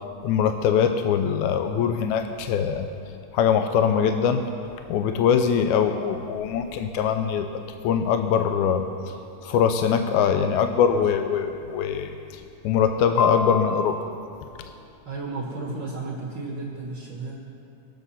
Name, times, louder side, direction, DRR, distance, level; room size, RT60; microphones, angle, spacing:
voice 1, 0.2-2.9 3.3-4.4 4.9-7.5 7.8-8.9 9.4-14.0, left 7 dB, 80° left, 7 dB, 1.9 m, -22 dB
voice 2, 15.1-17.3, right 3 dB, 50° right, -3 dB, 1.8 m, -33 dB
21.5 x 8.1 x 5.6 m, 2.7 s
omnidirectional pair, 3.7 m